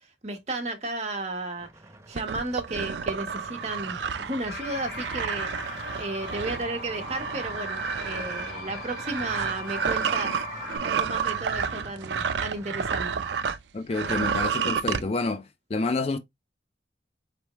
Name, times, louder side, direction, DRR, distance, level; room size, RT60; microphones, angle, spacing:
voice 1, 0.0-1.7 2.1-13.3, right 2 dB, 40° right, 1.1 m, -34 dB
sound 1, 1.6-13.0, right 1 dB, 15° right, 0.6 m, -47 dB
sound 2, 2.2-13.6 13.9-15.0, right 6 dB, 80° right, 0.4 m, -30 dB
sound 3, 4.5-10.8, left 1 dB, 60° left, 2.0 m, -38 dB
voice 2, 13.7-15.4 15.7-16.2, left 3 dB, 35° left, 0.4 m, -28 dB
4.3 x 3.4 x 3.0 m
head